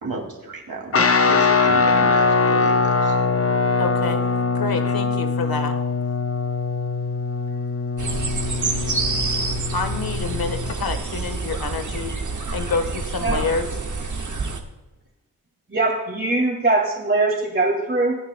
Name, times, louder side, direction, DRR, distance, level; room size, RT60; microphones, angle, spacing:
voice 1, 0.0-3.2, right 3 dB, 65° right, 0 dB, 2.6 m, -34 dB
Guitar, 0.9-10.8, left 4 dB, 40° left, 0.7 m, -22 dB
voice 2, 3.8-4.2 4.5-5.7 9.7-12.1 12.5-13.7, left 4 dB, 70° left, 7 dB, 1.3 m, -27 dB
sound 1, 8.0-14.6, right 3 dB, 50° right, 1.3 m, -27 dB
voice 3, 15.7-18.2, right 2 dB, 30° right, -4 dB, 2.2 m, -21 dB
26.0 x 9.4 x 2.2 m, 1.0 s
wide cardioid pair, 110°, 38 cm